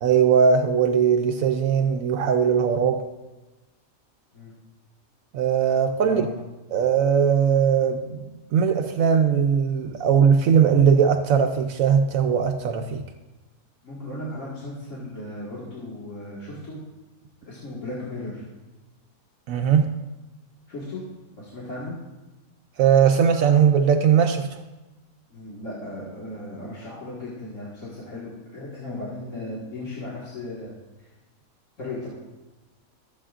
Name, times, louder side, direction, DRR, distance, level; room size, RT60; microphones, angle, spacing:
voice 1, 0.0-3.0 5.3-6.2 6.7-13.0 19.5-20.0 22.8-24.6, right 7 dB, 75° right, 1.0 m, -19 dB
voice 2, 6.0-6.3 13.8-16.8 17.5-18.4 20.7-21.0 21.4-22.0 25.3-30.7 31.0-31.1 31.8-32.2, left 2 dB, 60° left, 2.2 m, -36 dB
15.0 x 7.7 x 2.5 m
omnidirectional pair, 1.5 m